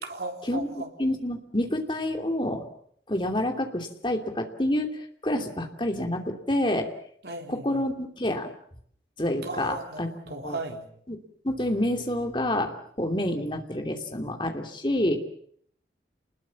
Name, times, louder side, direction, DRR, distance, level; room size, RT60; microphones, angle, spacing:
voice 1, 0.0-0.9 7.2-7.8 9.4-10.9, right 2 dB, 65° right, 4 dB, 3.8 m, -36 dB
voice 2, 1.0-2.6 3.1-6.9 7.5-8.5 9.2-10.1 10.4-10.6 11.1-11.2 11.4-15.2, left 1 dB, 25° left, 4 dB, 2.9 m, -28 dB
29.0 x 20.5 x 7.2 m, 0.65 s
head